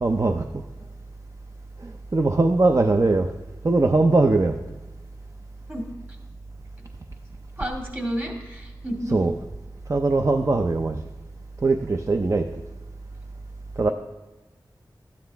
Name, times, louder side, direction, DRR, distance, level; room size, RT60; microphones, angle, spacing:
voice 1, 0.0-0.6 1.8-3.3 3.6-4.6 9.1-9.3 9.9-11.0 11.6-12.6 13.8-13.9, right 3 dB, 40° right, 6 dB, 0.5 m, -21 dB
voice 2, 7.6-9.2, equal, 25° right, 0 dB, 2.2 m, -30 dB
12.5 x 9.4 x 3.5 m, 1.1 s
wide cardioid pair, 85°, 8 cm